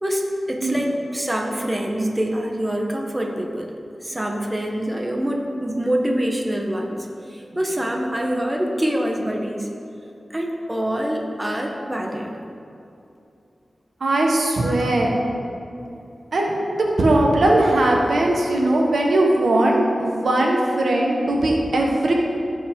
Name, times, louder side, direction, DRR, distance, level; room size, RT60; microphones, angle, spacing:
voice 1, 0.0-3.7 4.0-9.7 10.3-12.3 14.6-14.8 15.5-15.6, equal, 20° right, 1 dB, 1.1 m, -25 dB
voice 2, 14.0-15.1 16.3-22.1, right 1 dB, 80° right, -1 dB, 1.3 m, -19 dB
15.5 x 5.3 x 3.7 m, 2.7 s
wide cardioid pair, 70°, 0 cm